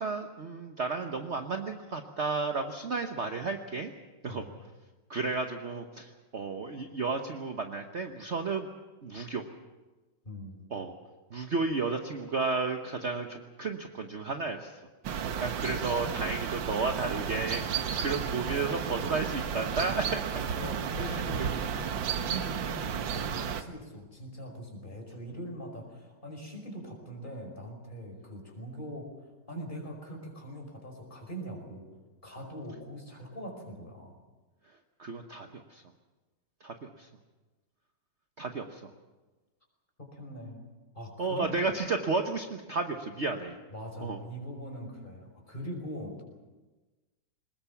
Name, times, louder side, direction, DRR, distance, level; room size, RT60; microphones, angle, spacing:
voice 1, 0.0-3.9 4.2-4.5 5.1-8.7 9.0-9.5 10.7-10.9 11.3-14.8 15.1-20.4 21.0-21.5 35.0-35.8 36.6-37.1 38.4-38.9 41.2-43.6 44.0-44.2, right 3 dB, 45° right, 5 dB, 1.2 m, -33 dB
sound 1, 15.0-23.6, right 7 dB, 85° right, 1.8 m, -33 dB
voice 2, 20.6-29.1 29.5-31.8 32.2-34.1 40.0-40.6 40.9-41.4 43.7-46.2, equal, 25° left, 1 dB, 5.5 m, -42 dB
22.0 x 20.5 x 7.2 m, 1.2 s
omnidirectional pair, 2.0 m